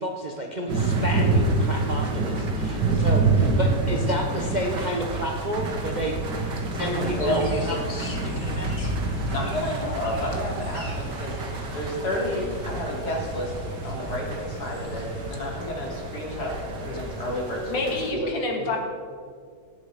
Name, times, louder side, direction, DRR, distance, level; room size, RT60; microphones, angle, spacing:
voice 1, 0.0-8.9, equal, 35° right, 2 dB, 0.7 m, -31 dB
sound 1, 0.7-18.1, right 3 dB, 75° right, 2.2 m, -28 dB
voice 2, 6.8-7.5 9.3-11.4 11.7-13.5 13.8-18.3 18.6-18.7, left 1 dB, 60° left, -2 dB, 3.4 m, -30 dB
sound 2, 6.8-15.4, equal, 35° left, 2.2 m, -39 dB
voice 3, 17.7-18.8, left 2 dB, 85° left, 1 dB, 2.6 m, -27 dB
18.0 x 7.7 x 5.0 m, 2.1 s
omnidirectional pair, 1.9 m